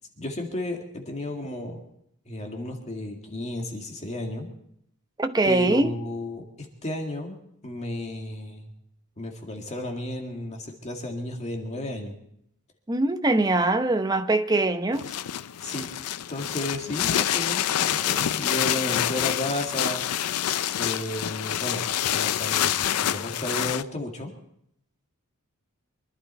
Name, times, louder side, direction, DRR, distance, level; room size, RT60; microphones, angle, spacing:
voice 1, 0.2-1.8 2.3-4.5 5.4-7.4 7.6-8.7 9.2-12.1 15.6-15.9 16.3-20.0 20.8-21.8 22.1-24.3, left 1 dB, 30° left, 2.0 m, -33 dB
voice 2, 5.2-5.9 12.9-15.2, right 2 dB, 15° right, 0.7 m, -23 dB
sound 1, 14.9-23.8, left 11 dB, 80° left, 0.5 m, -27 dB
24.5 x 11.5 x 4.3 m
head